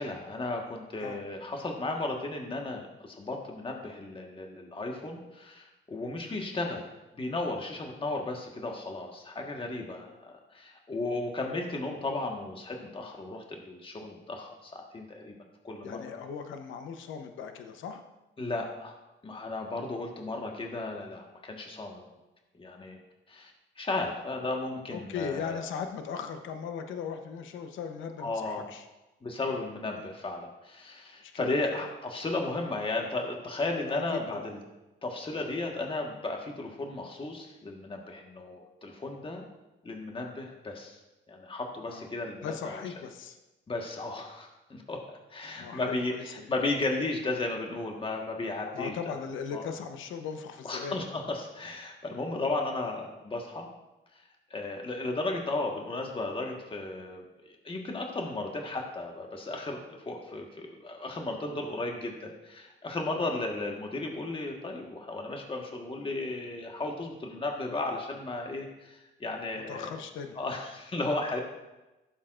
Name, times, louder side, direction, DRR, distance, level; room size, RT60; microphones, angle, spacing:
voice 1, 0.0-6.9 7.1-15.3 15.6-16.1 18.4-19.0 19.2-22.1 22.6-23.0 23.3-23.5 23.8-25.8 28.2-28.7 29.2-34.6 35.0-39.4 39.8-41.0 41.3-42.8 43.7-49.1 49.5-49.7 50.6-53.7 54.1-54.2 54.5-69.9 70.3-71.4, left 2 dB, 25° left, 1 dB, 1.4 m, -35 dB
voice 2, 15.8-18.0 24.9-28.8 29.9-30.1 31.2-31.8 33.9-34.0 34.3-34.5 41.9-42.1 42.4-43.4 45.5-46.2 48.7-50.9 63.2-63.4 69.7-70.4, left 6 dB, 80° left, 6 dB, 0.9 m, -38 dB
14.5 x 7.3 x 2.5 m, 1.0 s
cardioid pair, 90°, 20 cm